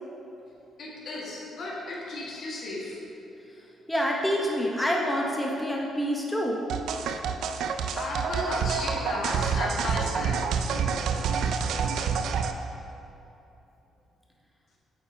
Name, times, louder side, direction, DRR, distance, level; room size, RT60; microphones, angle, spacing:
voice 1, 0.8-3.0 7.9-10.4, left 2 dB, 60° left, -3 dB, 1.7 m, -34 dB
voice 2, 3.9-6.6, equal, 5° left, -2 dB, 0.9 m, -27 dB
sound 1, 6.7-12.5, right 6 dB, 80° right, 0.4 m, -28 dB
8.3 x 7.4 x 2.8 m, 2.9 s
cardioid pair, 90°, 0 cm